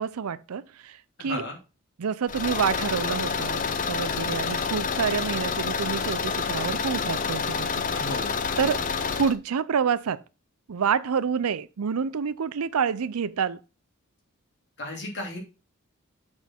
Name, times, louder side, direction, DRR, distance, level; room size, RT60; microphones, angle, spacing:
voice 1, 0.0-1.4 2.0-3.6 3.9-7.8 8.6-8.8 9.2-10.2 10.7-13.6, right 6 dB, 90° right, 0.5 m, -28 dB
voice 2, 1.2-1.6 7.9-8.3 14.8-15.4, left 1 dB, 55° left, 2.5 m, -34 dB
Car / Engine, 2.3-9.3, left 5 dB, 35° left, 0.6 m, -28 dB
7.3 x 4.4 x 4.4 m
head